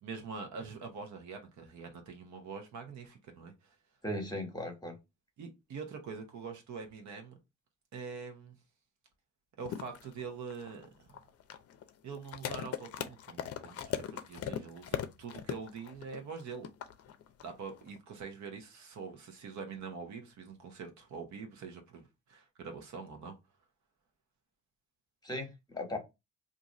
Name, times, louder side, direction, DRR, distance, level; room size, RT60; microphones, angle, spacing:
voice 1, 0.0-3.7 5.4-7.3 7.9-8.6 9.6-11.2 12.0-16.7 17.4-23.3, right 5 dB, 70° right, 0.9 m, -44 dB
voice 2, 4.0-5.0 25.2-26.0, left 1 dB, 15° left, 1.2 m, -37 dB
sound 1, 9.7-18.0, left 10 dB, 55° left, 0.5 m, -39 dB
2.6 x 2.4 x 4.1 m
cardioid pair, 90°, 30 cm